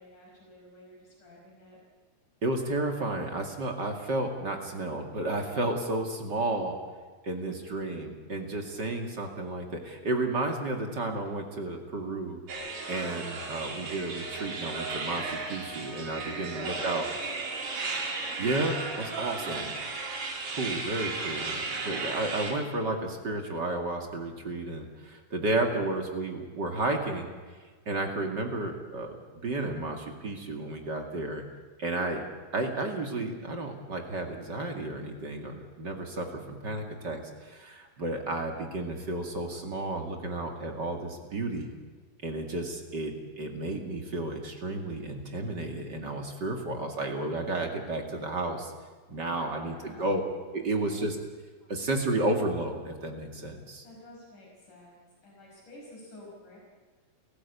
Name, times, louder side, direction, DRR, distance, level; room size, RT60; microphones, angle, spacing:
voice 1, 0.0-1.8 16.3-17.8 19.2-19.8 49.3-50.0 50.6-51.0 51.6-51.7 53.8-55.0 55.2-56.6, left 1 dB, 60° left, -2 dB, 6.6 m, -48 dB
voice 2, 2.4-6.8 7.2-17.0 18.4-19.7 20.5-27.3 27.9-29.2 29.4-31.4 31.8-32.2 32.5-41.7 42.2-48.7 49.1-50.2 50.5-51.2 51.7-53.8, right 2 dB, 35° right, 3 dB, 2.3 m, -32 dB
sound 1, 12.5-22.5, right 3 dB, 85° right, 5.0 m, -35 dB
30.0 x 15.0 x 8.4 m, 1.4 s
omnidirectional pair, 4.1 m